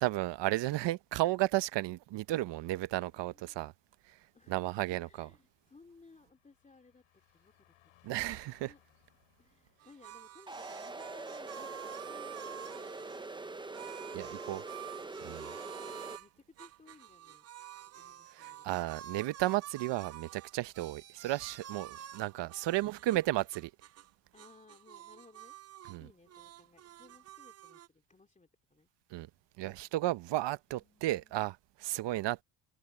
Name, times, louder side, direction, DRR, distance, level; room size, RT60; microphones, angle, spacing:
voice 1, 0.0-3.7 4.5-5.3 8.0-8.7 14.1-14.6 15.2-15.5 18.4-23.4 25.9-26.1 29.1-29.3 29.6-32.4, right 16 dB, 60° right, 0.9 m, -33 dB
Car passing by, 2.0-14.0 14.3-14.5, left 15 dB, 70° left, 7.7 m, -72 dB
voice 2, 3.0-3.7 4.3-4.7 5.0-7.0 7.3-7.7 8.5-8.8 9.4-12.4 12.7-13.9 15.9-17.5 17.8-18.7 22.7-23.2 24.3-25.5 26.0-28.9 30.7-31.4, left 3 dB, 15° left, 2.8 m, -61 dB
sound 1, 9.8-13.2 13.7-16.3 16.6-24.1 24.3-26.0 26.3-27.9, right 11 dB, 35° right, 0.5 m, -49 dB
sound 2, 10.5-16.2, right 3 dB, 10° right, 0.8 m, -43 dB
cardioid pair, 120°, 49 cm